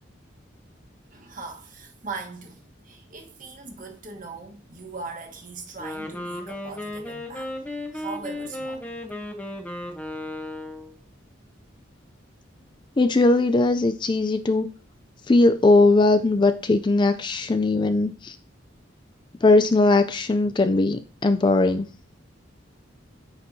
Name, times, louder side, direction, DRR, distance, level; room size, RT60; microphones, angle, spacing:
voice 1, 1.1-7.5 7.9-8.9, right 4 dB, 45° right, 1.3 m, -39 dB
Wind instrument woodwind instrument, 5.7-11.0, left 1 dB, 10° left, 0.8 m, -35 dB
voice 2, 13.0-14.7 15.3-18.4 19.4-21.9, left 2 dB, 25° left, 0.3 m, -19 dB
9.5 x 4.5 x 2.7 m
head